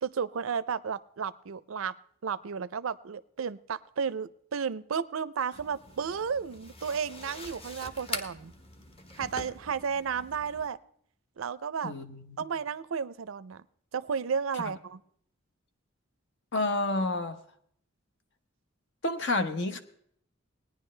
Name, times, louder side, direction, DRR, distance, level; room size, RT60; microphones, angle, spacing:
voice 1, 0.0-1.9 2.2-8.5 9.2-10.8 11.4-11.9 12.4-13.6 13.9-15.0, right 6 dB, 80° right, 17 dB, 0.5 m, -33 dB
sound 1, 5.5-10.7, left 2 dB, 30° left, 1.2 m, -43 dB
voice 2, 11.8-12.4 14.5-14.6 16.5-17.4 19.0-19.8, left 2 dB, 60° left, 8 dB, 1.1 m, -29 dB
19.5 x 10.0 x 3.3 m, 0.66 s
head